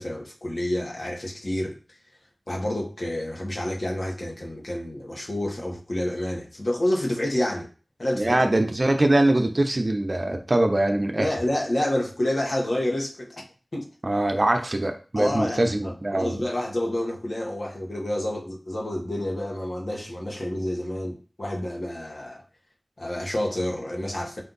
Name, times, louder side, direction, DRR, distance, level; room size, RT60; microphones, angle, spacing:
voice 1, 0.0-1.8 2.5-7.7 8.0-8.4 11.2-13.4 13.7-13.9 15.2-22.4 23.0-24.4, left 1 dB, 75° left, 1.2 m, -29 dB
voice 2, 8.1-11.3 14.0-16.4, right 1 dB, 55° right, 0.6 m, -22 dB
4.4 x 2.6 x 3.9 m
wide cardioid pair, 40°, 0 cm